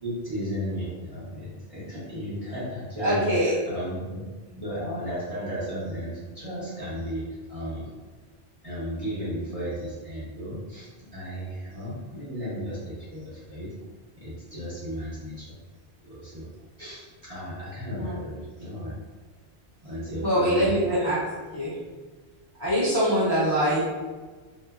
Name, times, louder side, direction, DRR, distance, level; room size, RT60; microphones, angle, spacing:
voice 1, 0.0-4.2 4.6-7.9 8.6-13.7 14.2-15.5 16.0-16.5 16.8-18.9 19.8-21.1, equal, 35° right, -10 dB, 0.7 m, -34 dB
voice 2, 3.0-3.6 18.0-18.2 20.2-21.2 21.5-21.7 22.6-23.8, equal, 25° left, -11 dB, 0.6 m, -23 dB
2.7 x 2.2 x 2.3 m, 1.4 s
omnidirectional pair, 1.1 m